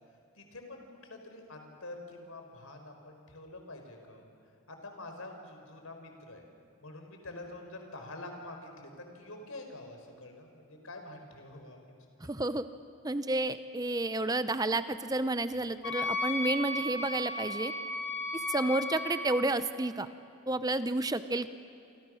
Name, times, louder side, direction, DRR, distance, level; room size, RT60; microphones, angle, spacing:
voice 1, 0.4-4.3 4.7-6.5 6.8-12.0 12.2-12.3, left 2 dB, 85° left, 4 dB, 4.5 m, -46 dB
voice 2, 12.2-12.7 13.0-17.7 18.3-20.1 20.5-21.5, right 2 dB, 20° right, 12 dB, 0.6 m, -31 dB
Wind instrument woodwind instrument, 15.8-19.5, left 2 dB, 55° left, 2.6 m, -35 dB
27.5 x 26.5 x 6.4 m, 2.7 s
head